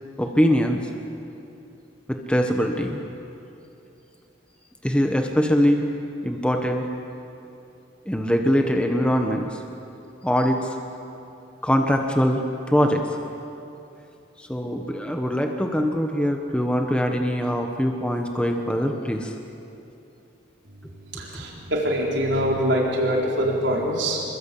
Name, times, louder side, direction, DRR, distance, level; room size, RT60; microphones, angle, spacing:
voice 1, 0.2-0.8 2.1-3.0 4.8-5.9 6.2-6.9 8.1-9.6 10.2-10.8 11.6-13.0 14.4-19.4 21.3-21.4, equal, 5° left, 3 dB, 1.3 m, -22 dB
voice 2, 21.2-24.2, equal, 75° right, -2 dB, 4.1 m, -24 dB
27.0 x 22.5 x 8.5 m, 2.7 s
head